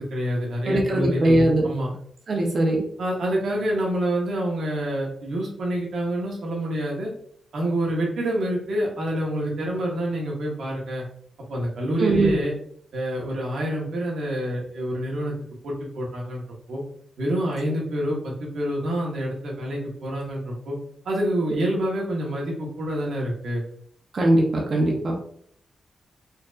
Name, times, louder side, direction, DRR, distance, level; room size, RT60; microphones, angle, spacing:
voice 1, 0.0-1.9 3.0-7.1 7.5-11.0 11.5-12.5 12.9-15.3 15.6-16.4 16.7-16.8 17.2-20.8 21.0-23.6, right 1 dB, 80° right, -2 dB, 1.2 m, -27 dB
voice 2, 0.6-1.7 2.3-2.8 12.0-12.3 24.1-25.2, right 1 dB, 50° right, 0 dB, 0.7 m, -20 dB
4.4 x 2.6 x 2.5 m, 0.64 s
wide cardioid pair, 140°, 0 cm